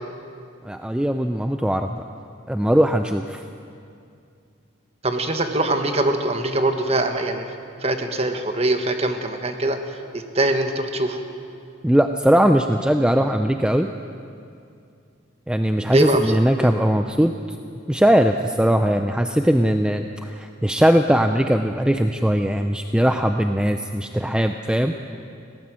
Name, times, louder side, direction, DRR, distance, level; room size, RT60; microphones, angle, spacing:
voice 1, 0.7-2.0 2.5-3.4 11.8-13.9 15.5-17.3 17.9-24.9, equal, 5° right, 6 dB, 0.5 m, -20 dB
voice 2, 5.0-7.5 7.8-11.2 15.9-16.7, right 1 dB, 30° right, 6 dB, 1.4 m, -23 dB
21.0 x 17.0 x 7.6 m, 2.4 s
head